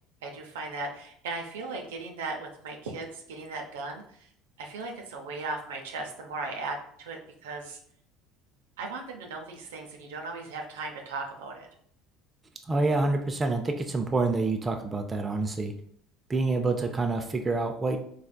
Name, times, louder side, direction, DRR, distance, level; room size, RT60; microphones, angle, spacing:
voice 1, 0.2-4.3 4.6-7.8 8.8-11.7, right 3 dB, 75° right, 2 dB, 0.5 m, -37 dB
voice 2, 12.7-15.7 16.3-18.0, right 3 dB, 25° right, 4 dB, 0.4 m, -27 dB
4.2 x 2.4 x 2.2 m, 0.64 s
figure-of-eight pair, 65°, 0 cm